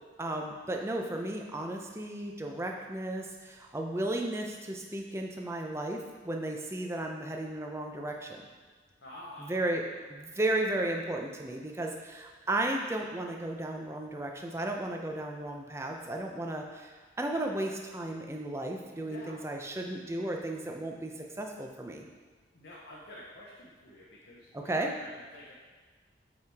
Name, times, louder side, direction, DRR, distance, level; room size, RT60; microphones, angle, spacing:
voice 1, 0.2-8.4 9.4-22.0 24.5-24.9, right 1 dB, 15° right, 1 dB, 0.5 m, -34 dB
voice 2, 9.0-9.6 9.9-10.0 19.0-19.5 22.5-25.5, left 1 dB, 85° left, -6 dB, 0.9 m, -49 dB
7.2 x 4.8 x 3.5 m, 1.4 s
head